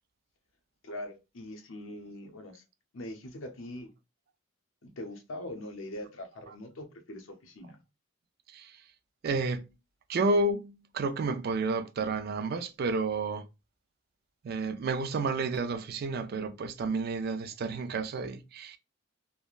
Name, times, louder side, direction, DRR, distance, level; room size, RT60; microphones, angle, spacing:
voice 1, 0.8-2.6 2.9-3.9 5.0-7.8, left 1 dB, 85° left, 0.7 m, -42 dB
voice 2, 8.5-8.8 9.2-9.7 10.1-13.5 14.4-18.8, right 3 dB, 50° right, 0.3 m, -31 dB
3.3 x 2.1 x 2.3 m
head